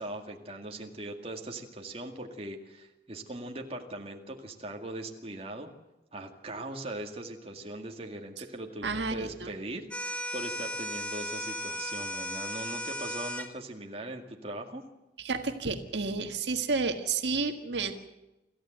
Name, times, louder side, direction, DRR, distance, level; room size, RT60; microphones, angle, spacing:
voice 1, 0.0-5.7 6.1-14.8, right 1 dB, 35° right, 3 dB, 2.1 m, -40 dB
voice 2, 8.8-9.5 15.2-17.9, right 4 dB, 75° right, 6 dB, 1.7 m, -31 dB
sound 1, 9.9-13.5, equal, 5° left, 1.3 m, -35 dB
27.0 x 14.5 x 8.0 m, 0.98 s
head